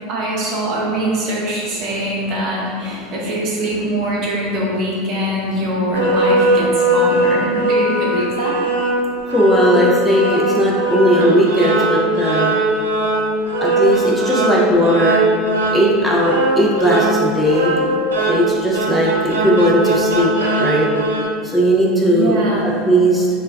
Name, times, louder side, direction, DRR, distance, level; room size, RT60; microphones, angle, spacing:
voice 1, 0.1-8.6 22.1-22.7, right 1 dB, 50° right, -4 dB, 0.7 m, -22 dB
sound 1, 5.9-21.3, right 1 dB, 85° right, 0.4 m, -19 dB
voice 2, 9.3-12.5 13.6-15.2 15.7-17.8 18.3-20.3 20.6-20.9 21.4-22.3 22.6-23.3, equal, 5° left, -5 dB, 0.5 m, -17 dB
2.2 x 2.1 x 3.3 m, 2.4 s
hypercardioid pair, 85°, 0 cm